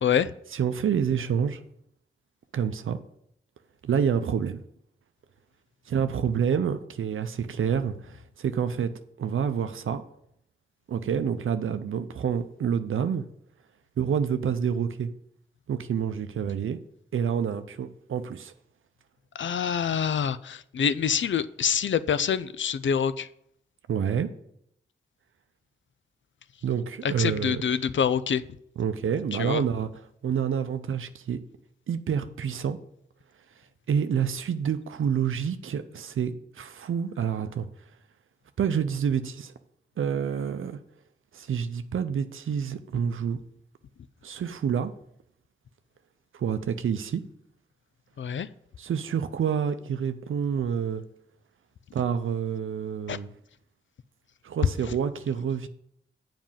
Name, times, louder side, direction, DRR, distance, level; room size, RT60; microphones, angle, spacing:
voice 1, 0.0-0.3 19.3-23.3 27.2-28.4 29.4-29.6 48.2-48.5 53.1-53.2, left 7 dB, 70° left, 0.5 m, -26 dB
voice 2, 0.5-1.6 2.5-3.0 3.8-4.6 5.9-8.9 9.2-10.0 10.9-13.2 14.0-15.1 15.7-16.8 17.1-18.5 23.9-24.3 26.6-27.6 28.8-29.9 30.2-31.4 31.9-32.8 33.9-37.7 38.6-39.5 40.0-40.8 41.3-43.4 44.2-44.9 46.3-47.2 48.8-51.0 51.9-53.3 54.4-55.7, right 7 dB, 80° right, 0.6 m, -28 dB
7.4 x 5.2 x 7.3 m
cardioid pair, 55°, 21 cm